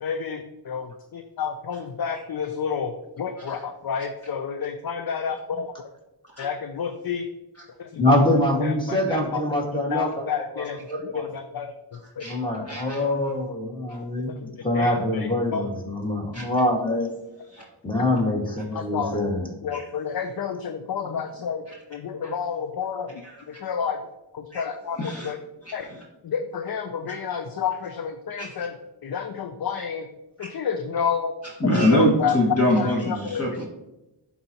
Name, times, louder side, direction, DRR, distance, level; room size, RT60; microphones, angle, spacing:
voice 1, 0.0-5.7 6.4-7.3 7.8-8.2 8.6-9.6 9.9-10.8 11.3-11.7 12.2-12.3 14.4-14.5 14.7-15.6 18.7-19.2 19.6-21.6 21.9-23.1 23.6-24.0 24.3-25.4 25.7-25.9 26.2-28.7 29.0-30.1 30.4-31.3 31.9-32.3 32.8-33.4, left 7 dB, 55° left, 7 dB, 0.6 m, -30 dB
voice 2, 8.0-10.3 10.5-11.3 12.2-17.1 17.8-19.5, left 1 dB, 10° left, -1 dB, 1.8 m, -24 dB
voice 3, 12.7-13.1 13.9-14.0 16.3-16.4 17.5-17.6 19.7-19.9 21.7-21.8 22.2-22.3 23.2-23.4 24.5-24.6 24.9-25.3 25.6-26.0 28.4-28.5 30.4-30.5 31.6-33.6, equal, 30° left, -4 dB, 2.0 m, -24 dB
11.0 x 4.1 x 2.9 m, 0.96 s
wide cardioid pair, 70°, 45 cm